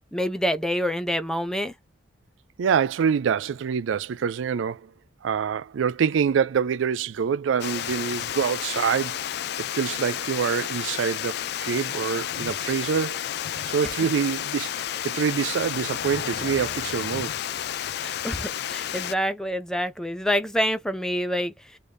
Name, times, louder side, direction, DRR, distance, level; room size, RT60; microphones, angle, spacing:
voice 1, 0.1-1.7 18.0-21.8, equal, 5° left, 0.5 m, -27 dB
voice 2, 2.6-4.9 5.2-9.3 9.6-13.3 13.7-17.3, right 7 dB, 80° right, 0.4 m, -26 dB
Water, 7.6-19.1, left 10 dB, 60° left, 0.3 m, -31 dB
3.2 x 2.6 x 3.4 m
head